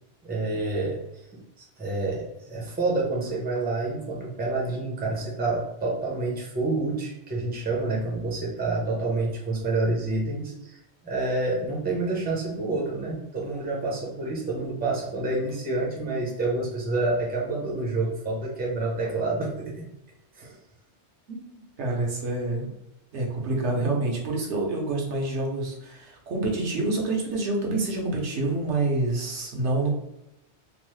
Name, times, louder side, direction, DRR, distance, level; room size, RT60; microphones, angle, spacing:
voice 1, 0.2-1.0 1.6-10.8 11.0-19.7 20.3-20.6, right 2 dB, 10° right, -3 dB, 0.5 m, -28 dB
voice 2, 21.3-22.7 23.1-29.9, right 2 dB, 80° right, -1 dB, 1.1 m, -27 dB
3.0 x 2.0 x 3.0 m, 0.87 s
omnidirectional pair, 1.2 m